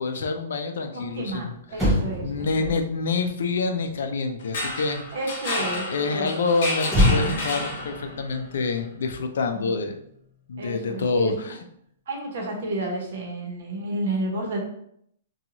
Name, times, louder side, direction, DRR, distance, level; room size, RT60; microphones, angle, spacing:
voice 1, 0.0-1.5 1.8-1.9 2.2-5.0 5.6-10.0 10.5-11.6, left 4 dB, 70° left, 6 dB, 0.4 m, -27 dB
voice 2, 0.9-2.8 5.1-6.3 9.5-9.7 10.6-11.3 12.1-14.6, right 1 dB, 60° right, 0 dB, 0.9 m, -31 dB
Motor vehicle (road), 1.3-1.4 1.7-5.2 6.9-9.5 9.7-10.0, left 1 dB, ahead, 0.6 m, -27 dB
sound 1, 4.4-8.3, left 2 dB, 50° left, 1.0 m, -31 dB
2.6 x 2.3 x 2.9 m, 0.71 s
hypercardioid pair, 175°, 0 cm